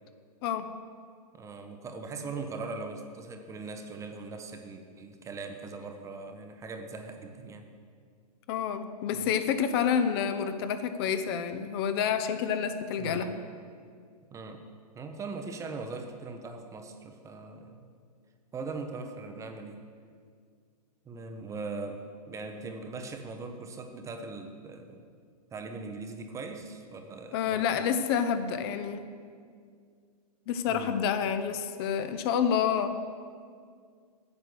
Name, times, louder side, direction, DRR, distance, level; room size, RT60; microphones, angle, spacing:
voice 1, 1.3-7.7 9.1-9.3 13.0-13.3 14.3-14.6 14.9-17.9 18.5-19.8 21.1-25.1 25.5-27.9 30.7-31.0, right 3 dB, 15° right, 5 dB, 0.7 m, -40 dB
voice 2, 8.5-13.3 27.3-29.1 30.5-32.9, left 7 dB, 40° left, 10 dB, 0.7 m, -28 dB
8.5 x 8.0 x 6.2 m, 2.1 s
hypercardioid pair, 120°, 20 cm